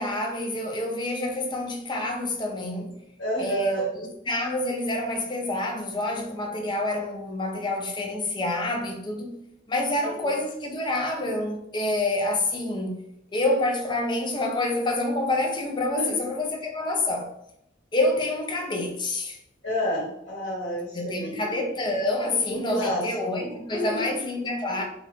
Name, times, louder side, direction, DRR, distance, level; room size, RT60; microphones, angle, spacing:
voice 1, 0.0-3.0 3.4-9.3 9.7-13.0 13.3-17.3 17.9-19.4 20.9-24.8, left 2 dB, 25° left, 0.5 m, -27 dB
voice 2, 3.2-3.9 10.0-10.3 15.9-16.2 19.6-21.5 22.3-23.0 23.4-24.0 24.7-24.8, equal, 75° left, 1.0 m, -30 dB
2.8 x 2.5 x 3.3 m
head